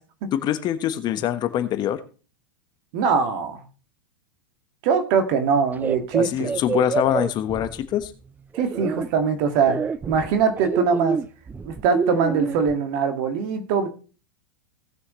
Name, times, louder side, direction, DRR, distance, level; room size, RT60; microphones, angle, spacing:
voice 1, 0.3-2.0 6.2-8.1, left 11 dB, 35° left, 11 dB, 1.2 m, -24 dB
voice 2, 2.9-3.6 4.8-6.5 8.6-9.8 10.1-11.2 11.6-13.9, right 6 dB, 55° right, 7 dB, 2.0 m, -22 dB
sound 1, 5.8-8.1 8.5-9.1 9.6-12.7, right 5 dB, 15° right, 0.5 m, -27 dB
18.0 x 6.4 x 3.1 m, 0.35 s
hypercardioid pair, 100°, 12 cm